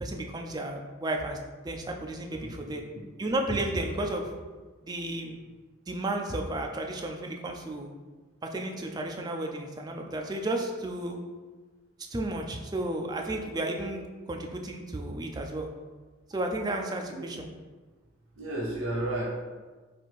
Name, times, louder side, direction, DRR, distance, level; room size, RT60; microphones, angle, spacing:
voice 1, 0.0-1.4 1.6-2.8 3.2-4.3 4.8-5.4 5.9-7.9 8.4-11.2 12.1-15.7 16.3-17.5, right 1 dB, 20° right, 2 dB, 0.4 m, -33 dB
voice 2, 2.4-3.1 17.1-17.2 18.4-19.2, right 1 dB, 85° right, -3 dB, 0.9 m, -33 dB
4.1 x 2.6 x 4.6 m, 1.4 s
head